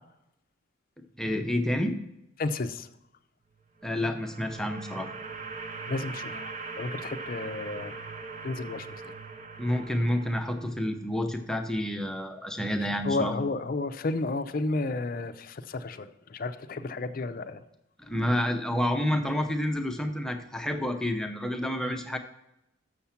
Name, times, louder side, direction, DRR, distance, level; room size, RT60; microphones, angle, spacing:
voice 1, 1.2-2.0 3.8-5.1 9.6-13.4 18.0-22.2, left 1 dB, 5° left, 4 dB, 0.6 m, -29 dB
voice 2, 2.4-2.9 5.9-6.5 6.8-8.0 8.4-9.1 13.0-17.6 21.8-21.9, left 3 dB, 45° left, 11 dB, 0.5 m, -32 dB
sound 1, 3.8-10.9, right 4 dB, 35° right, 0.7 m, -41 dB
7.0 x 6.5 x 5.7 m, 0.85 s
head